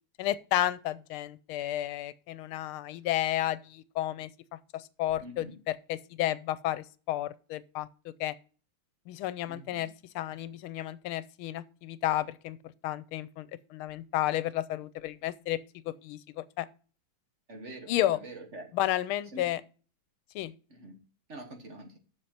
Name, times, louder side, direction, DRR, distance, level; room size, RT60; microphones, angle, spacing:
voice 1, 0.2-4.3 4.7-7.9 8.2-8.3 9.1-9.9 10.1-12.6 12.8-15.6 15.8-16.7 17.9-18.2 18.7-19.6 20.3-20.5, left 13 dB, 85° left, 1.5 m, -32 dB
voice 2, 5.2-5.6 9.5-9.8 17.5-18.7 19.3-19.5 20.7-21.0 21.3-22.0, right 1 dB, 35° right, 1.6 m, -45 dB
7.8 x 6.4 x 5.6 m
omnidirectional pair, 2.3 m